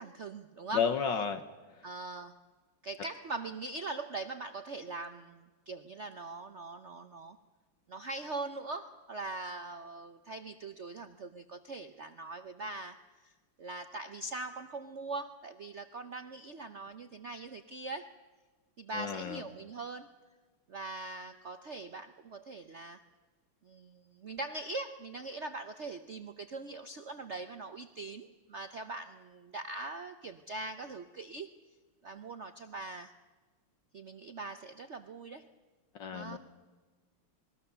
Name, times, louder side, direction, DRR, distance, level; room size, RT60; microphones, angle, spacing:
voice 1, 0.0-0.9 1.8-2.4 2.8-7.4 7.9-13.3 13.6-18.1 18.8-20.1 20.7-23.0 23.6-31.6 32.0-33.2 33.9-35.5 36.1-36.4, right 3 dB, 75° right, 9 dB, 0.6 m, -42 dB
voice 2, 0.7-1.4 18.9-19.4 35.9-36.4, left 7 dB, 60° left, 8 dB, 1.6 m, -32 dB
27.5 x 21.0 x 6.9 m, 1.4 s
omnidirectional pair, 2.4 m